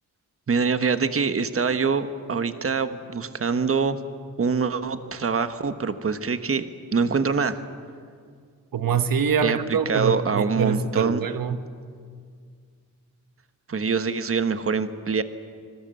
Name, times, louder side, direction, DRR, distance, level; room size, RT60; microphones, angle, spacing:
voice 1, 0.5-4.0 4.4-6.6 6.9-7.6 9.4-11.2 13.7-15.2, right 5 dB, 40° right, 10 dB, 1.2 m, -24 dB
voice 2, 8.7-11.7, right 6 dB, 80° right, 10 dB, 1.1 m, -25 dB
25.5 x 22.5 x 7.8 m, 2.1 s
wide cardioid pair, 120°, 34 cm